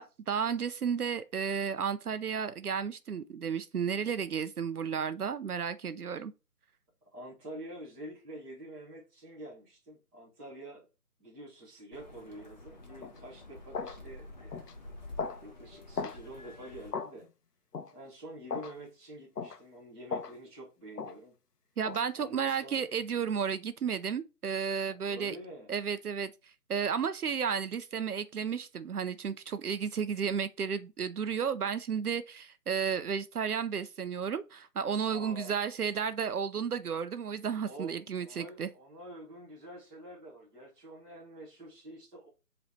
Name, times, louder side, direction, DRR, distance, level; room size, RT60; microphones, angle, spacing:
voice 1, 0.0-6.3 21.8-25.4 25.7-38.7, right 7 dB, 70° right, 0.7 m, -33 dB
voice 2, 7.1-10.8 11.2-14.6 15.4-17.3 17.9-21.3 22.1-22.8 24.9-25.7 35.0-35.6 37.6-42.3, right 1 dB, 5° right, 1.4 m, -47 dB
sound 1, 11.9-16.9, left 2 dB, 30° left, 1.0 m, -49 dB
sound 2, 13.0-13.2 13.7-14.0 14.5-14.7 15.2-15.4 16.0-16.2 16.9-17.1 17.7-17.9 18.5-18.7 19.4-19.6 20.1-20.4 21.0-21.2 21.9-22.1, left 5 dB, 85° left, 1.1 m, -36 dB
7.8 x 3.2 x 4.2 m
figure-of-eight pair, 165°, 46 cm